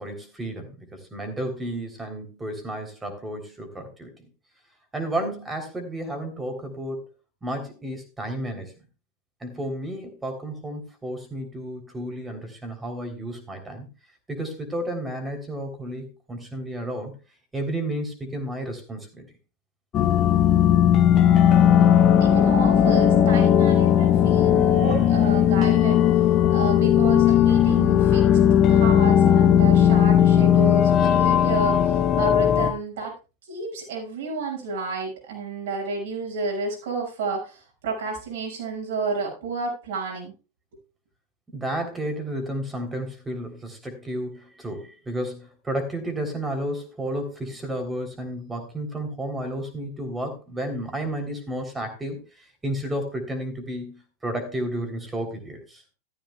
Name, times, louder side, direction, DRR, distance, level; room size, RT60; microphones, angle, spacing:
voice 1, 0.0-4.1 4.9-7.1 7.4-8.7 9.4-13.9 14.3-17.2 17.5-19.3 41.5-55.8, right 1 dB, 10° right, 5 dB, 3.4 m, -32 dB
sound 1, 19.9-32.7, left 9 dB, 30° left, 1.0 m, -17 dB
voice 2, 22.2-26.0 26.5-28.3 28.7-33.1 33.4-40.3, right 3 dB, 55° right, 0 dB, 6.4 m, -30 dB
14.0 x 13.5 x 2.4 m, 0.31 s
figure-of-eight pair, 90°, 0 cm